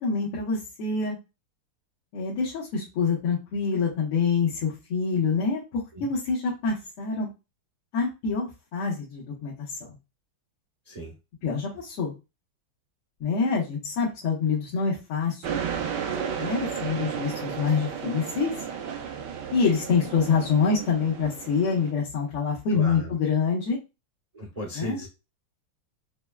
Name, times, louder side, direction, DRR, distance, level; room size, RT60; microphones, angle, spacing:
voice 1, 0.0-1.2 2.1-7.3 7.9-9.9 11.4-12.1 13.2-15.4 16.4-18.5 19.5-23.8 24.8-25.0, left 5 dB, 90° left, -7 dB, 2.0 m, -26 dB
sound 1, 15.4-21.9, right 7 dB, 75° right, 1.0 m, -33 dB
voice 2, 22.7-23.1 24.3-25.1, equal, 45° right, -1 dB, 0.5 m, -36 dB
5.8 x 2.2 x 2.3 m, 0.26 s
omnidirectional pair, 2.4 m